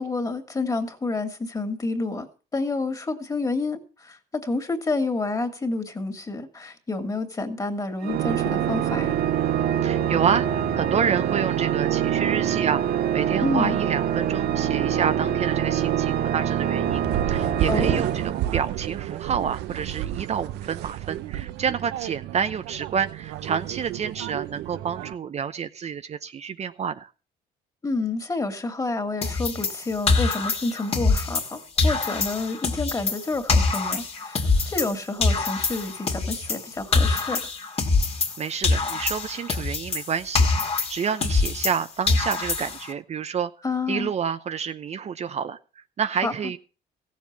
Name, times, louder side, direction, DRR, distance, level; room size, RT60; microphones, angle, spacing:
voice 1, 0.0-2.3 2.5-9.1 13.4-13.8 17.7-18.0 27.8-37.5 43.6-44.1 46.2-46.3, left 3 dB, 20° left, 2.7 m, -29 dB
Organ, 8.0-19.0, right 10 dB, 65° right, 1.6 m, -25 dB
voice 2, 9.8-27.1 38.4-43.5 43.9-46.6, right 7 dB, 40° right, 0.8 m, -29 dB
sound 1, 16.9-25.2, right 13 dB, 85° right, 0.8 m, -31 dB
sound 2, 29.2-31.5 31.8-34.9 35.2-38.4 38.6-41.8 42.1-42.9, left 3 dB, 35° left, 2.4 m, -24 dB
16.0 x 7.4 x 7.1 m
cardioid pair, 110°, 17 cm